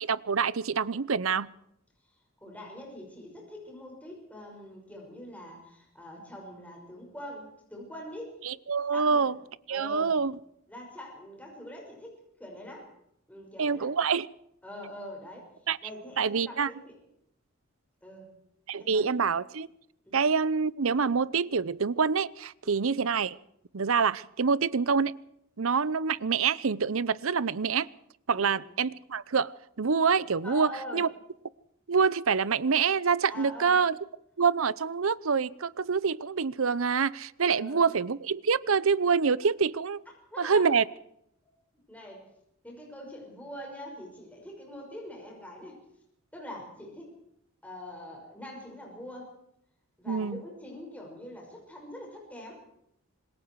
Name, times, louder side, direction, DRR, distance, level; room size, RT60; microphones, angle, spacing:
voice 1, 0.0-1.5 8.4-9.4 9.7-10.3 13.6-14.3 15.7-15.8 16.2-16.7 18.7-19.7 20.1-23.4 23.7-25.1 25.6-27.9 28.3-29.5 29.8-31.1 31.9-34.0 34.4-40.0 40.4-40.8 50.1-50.4, right 5 dB, 70° right, 19 dB, 0.7 m, -26 dB
voice 2, 2.4-8.4 8.9-9.3 9.7-10.1 10.7-12.9 13.3-13.9 14.6-15.4 15.8-17.0 18.0-18.3 18.8-19.2 20.1-20.2 22.6-22.9 28.3-28.6 30.4-31.0 33.3-33.8 37.5-37.9 40.3-40.8 41.9-42.2 42.6-45.8 46.3-47.1 47.6-49.3 50.0-52.6, left 1 dB, 5° left, -1 dB, 5.8 m, -43 dB
26.5 x 20.5 x 4.7 m, 0.75 s
head